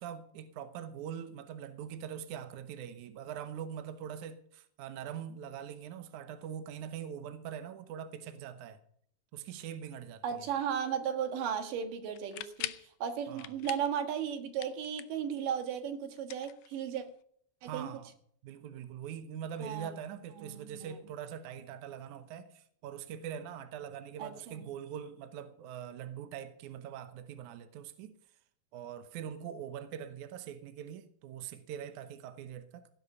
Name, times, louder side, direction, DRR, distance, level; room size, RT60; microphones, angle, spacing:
voice 1, 0.0-8.8 9.3-10.5 13.3-13.5 17.6-18.1 18.4-28.2 28.7-32.9, right 9 dB, 80° right, 1.7 m, -43 dB
voice 2, 10.2-12.7 13.0-17.0 17.6-17.9 19.6-19.9 20.4-21.0 24.2-24.6, right 8 dB, 60° right, 2.8 m, -35 dB
sound 1, 12.1-12.9 13.4-14.0 14.3-15.3 16.2-17.1, left 15 dB, 80° left, 2.1 m, -42 dB
16.5 x 10.5 x 5.5 m
omnidirectional pair, 4.8 m